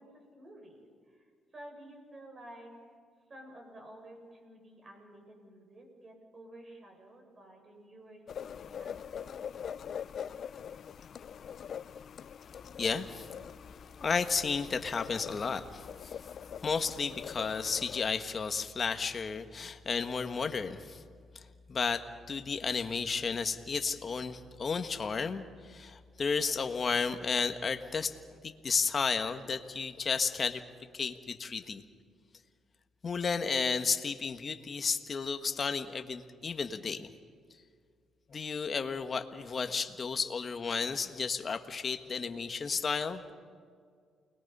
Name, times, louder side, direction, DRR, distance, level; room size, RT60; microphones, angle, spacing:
voice 1, 0.0-2.8 3.3-9.4, right 1 dB, 40° right, 1 dB, 7.0 m, -52 dB
sound 1, 8.3-18.1, left 8 dB, 60° left, 0.5 m, -43 dB
voice 2, 12.8-13.3 14.0-16.2 16.6-21.0 21.3-21.4 21.7-28.2 28.4-30.6 30.9-31.8 33.0-37.1 38.3-43.2, left 5 dB, 40° left, 8 dB, 1.4 m, -33 dB
29.0 x 21.0 x 5.5 m, 2.1 s
cardioid pair, 90°, 0 cm